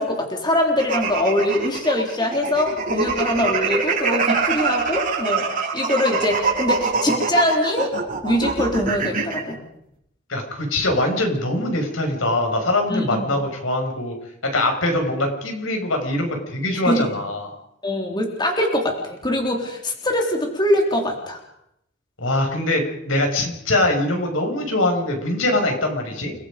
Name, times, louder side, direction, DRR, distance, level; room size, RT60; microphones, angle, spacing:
voice 1, 0.0-5.5 5.7-7.9 8.2-9.6 12.9-13.3 16.7-17.1 17.8-21.4, left 1 dB, 20° left, 1 dB, 3.8 m, -23 dB
sound 1, 0.8-9.4, right 4 dB, 45° right, 6.2 m, -24 dB
voice 2, 10.3-14.1 14.4-17.5 22.2-26.3, left 1 dB, 80° left, 3 dB, 6.5 m, -22 dB
30.0 x 22.0 x 5.3 m, 0.77 s
head